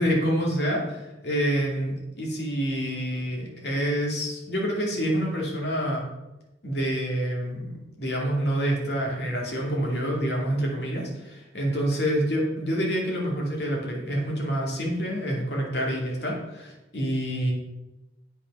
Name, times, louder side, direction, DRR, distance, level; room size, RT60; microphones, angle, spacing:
voice 1, 0.0-6.1 6.6-17.5, equal, 60° left, -2 dB, 2.5 m, -27 dB
8.6 x 5.9 x 5.4 m, 0.99 s
head